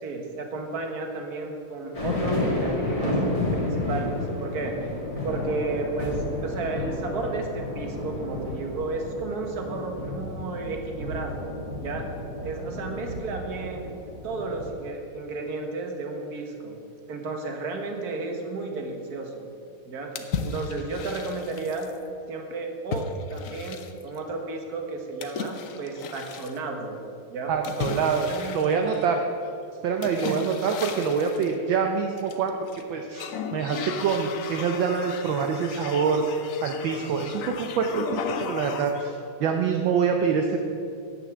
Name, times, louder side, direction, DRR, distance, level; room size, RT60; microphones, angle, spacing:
voice 1, 0.0-3.2 3.5-5.0 5.2-11.5 11.8-12.1 12.4-13.9 14.2-16.8 17.1-19.5 19.9-20.1 20.4-21.9 22.3-27.0 27.3-27.5 28.3-28.8 30.3-30.4, right 3 dB, 50° right, 3 dB, 1.7 m, -33 dB
sound 1, 1.9-14.7, left 1 dB, 15° left, 2.2 m, -31 dB
sound 2, 20.2-22.0 22.9-24.2 25.2-26.6 27.6-29.3 30.0-31.5 32.2-32.8 33.1-39.1, left 5 dB, 70° left, 0.7 m, -35 dB
voice 2, 27.5-28.3 28.5-29.2 29.8-32.5 32.9-36.2 36.6-40.6, right 6 dB, 70° right, 4 dB, 1.4 m, -25 dB
9.6 x 8.4 x 7.4 m, 2.6 s
omnidirectional pair, 2.4 m